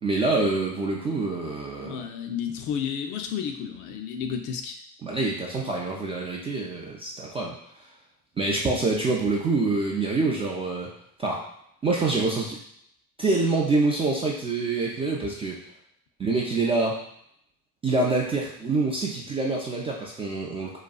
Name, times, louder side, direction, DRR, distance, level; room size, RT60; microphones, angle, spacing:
voice 1, 0.0-2.0 5.0-7.6 8.4-10.9 11.2-11.4 11.8-12.6 13.2-15.6 16.2-17.0 17.8-20.8, right 3 dB, 15° right, -3 dB, 0.3 m, -26 dB
voice 2, 1.8-4.8, left 7 dB, 45° left, 4 dB, 0.5 m, -32 dB
4.0 x 2.3 x 2.3 m, 0.71 s
figure-of-eight pair, 60°, 43 cm